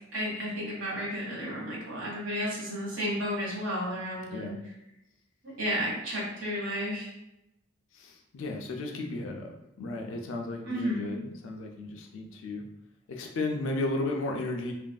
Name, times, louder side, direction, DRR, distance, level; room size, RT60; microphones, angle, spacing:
voice 1, 0.1-4.5 5.6-7.1 10.6-11.2, equal, 75° right, -4 dB, 1.2 m, -32 dB
voice 2, 7.9-9.5 9.8-12.6 13.1-14.7, left 2 dB, 80° left, 2 dB, 0.4 m, -34 dB
3.2 x 2.5 x 2.2 m, 0.89 s
head